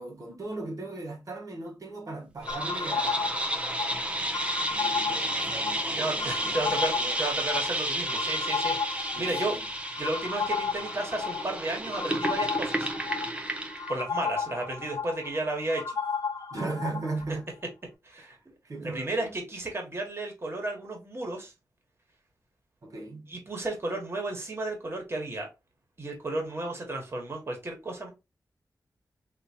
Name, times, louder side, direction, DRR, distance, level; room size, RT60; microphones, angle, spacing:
voice 1, 0.0-3.4 4.6-7.2 9.1-9.6 16.5-17.5 18.2-18.3 18.7-19.3 22.8-23.4, right 2 dB, 55° right, 1.2 m, -38 dB
sound 1, 2.4-13.9, right 1 dB, 15° right, 0.6 m, -32 dB
sound 2, 2.5-17.2, left 5 dB, 65° left, 0.6 m, -34 dB
voice 2, 6.0-9.5 10.0-12.9 13.5-13.6 13.9-15.9 18.0-18.5 18.8-21.5 23.3-25.5 26.0-28.1, right 2 dB, 35° right, 1.5 m, -33 dB
3.8 x 2.8 x 2.9 m
wide cardioid pair, 120°, 7 cm